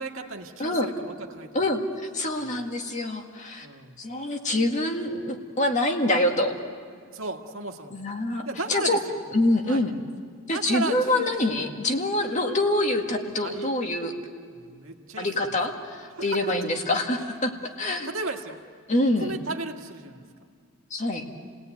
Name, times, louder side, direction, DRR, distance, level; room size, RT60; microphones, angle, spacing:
voice 1, 0.0-1.6 2.4-2.5 3.6-4.0 7.1-8.0 8.5-9.2 9.7-9.8 10.5-11.3 13.4-13.7 14.5-15.5 16.2-16.7 17.3-17.4 18.0-18.6 19.2-20.2, right 2 dB, 80° right, 3 dB, 1.9 m, -35 dB
voice 2, 1.5-3.7 4.0-6.5 7.9-8.4 8.7-9.0 9.3-9.9 10.5-14.1 15.2-18.1 18.9-19.3 20.9-21.3, left 1 dB, 35° left, 3 dB, 2.0 m, -25 dB
30.0 x 18.0 x 9.3 m, 2.1 s
head